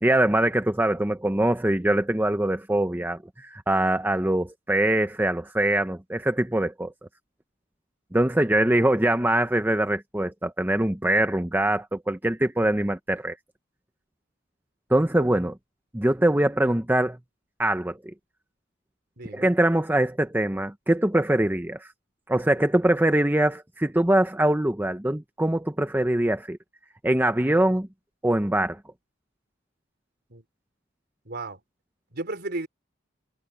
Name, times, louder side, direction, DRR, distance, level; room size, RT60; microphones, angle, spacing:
voice 1, 0.0-6.9 8.1-13.3 14.9-15.5 15.9-17.2 17.6-18.0 19.3-21.9 22.3-26.6 27.0-27.9 28.2-28.8, right 1 dB, 10° right, 0.8 m, -23 dB
voice 2, 19.2-19.5 30.3-30.4 31.3-31.6 32.1-32.7, right 2 dB, 55° right, 4.1 m, -34 dB
head